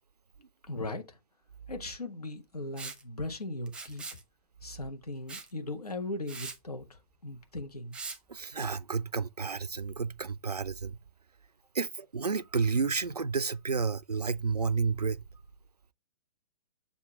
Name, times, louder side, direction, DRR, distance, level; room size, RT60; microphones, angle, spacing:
voice 1, 0.6-1.2 1.7-4.0 4.6-8.0, left 2 dB, 80° left, 1.7 m, -38 dB
Liquid, 2.8-3.0 3.7-4.2 5.3-5.5 5.9-6.0 6.3-6.6 7.9-8.2, right 4 dB, 5° right, 0.7 m, -41 dB
voice 2, 8.3-11.0 11.7-15.2, right 5 dB, 90° right, 0.5 m, -31 dB
7.1 x 2.9 x 5.8 m
figure-of-eight pair, 120°, 19 cm